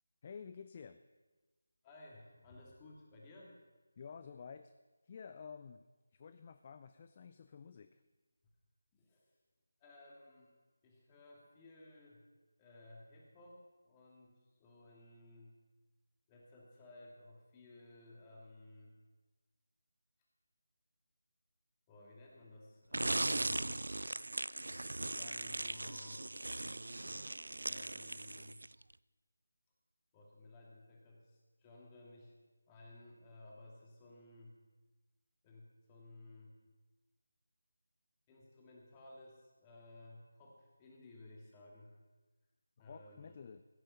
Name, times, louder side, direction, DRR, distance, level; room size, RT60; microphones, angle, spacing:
voice 1, 0.2-1.0 4.0-4.7 5.0-5.8 6.1-8.0 42.8-43.6, left 6 dB, 35° left, 10 dB, 0.4 m, -51 dB
voice 2, 1.8-3.5 8.9-9.3 9.8-10.5 10.8-12.2 12.6-15.5 16.3-18.9 21.9-23.6 25.0-26.3 27.6-28.6 30.1-32.4 32.7-34.6 35.4-36.5 38.3-42.0 42.8-43.4, left 2 dB, 20° left, -2 dB, 2.6 m, -57 dB
sound 1, 22.9-28.8, right 2 dB, 80° right, 0.3 m, -39 dB
16.0 x 8.9 x 5.8 m, 1.2 s
figure-of-eight pair, 165°, 0 cm